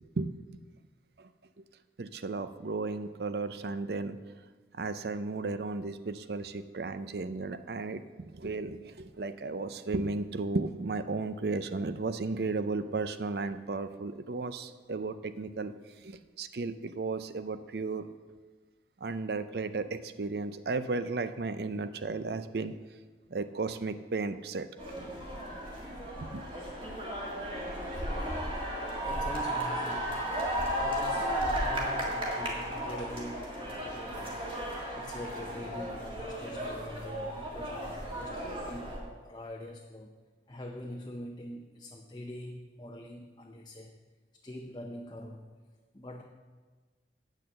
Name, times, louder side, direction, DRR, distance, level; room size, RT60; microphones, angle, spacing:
voice 1, 2.0-4.2 4.7-15.7 16.0-18.1 19.0-22.7 23.3-24.7 26.2-26.5, right 3 dB, 60° right, 11 dB, 0.5 m, -34 dB
sound 1, 24.8-39.0, equal, 30° right, 2.0 m, -34 dB
voice 2, 29.1-30.3 30.8-34.5 34.9-40.2 40.5-44.0 44.4-45.5 45.9-46.2, left 1 dB, 25° left, 2 dB, 0.6 m, -44 dB
8.5 x 6.6 x 7.6 m, 1.4 s
head